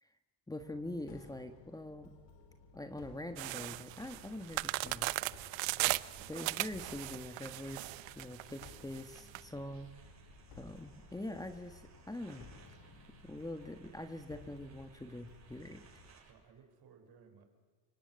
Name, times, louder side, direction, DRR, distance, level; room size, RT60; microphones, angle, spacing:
voice 1, 0.5-2.1 2.7-5.1 6.3-9.9 10.6-12.5 13.2-15.9, left 1 dB, 10° left, 8 dB, 1.5 m, -44 dB
sound 1, 0.6-16.1, left 4 dB, 70° left, 4.2 m, -58 dB
sound 2, 3.4-9.4, right 21 dB, 75° right, 0.8 m, -37 dB
sound 3, 3.9-16.3, right 5 dB, 35° right, 7.6 m, -60 dB
voice 2, 5.7-6.0 16.3-17.4, right 6 dB, 55° right, 6 dB, 5.7 m, -60 dB
29.5 x 17.5 x 9.6 m, 1.5 s
cardioid pair, 110°, 46 cm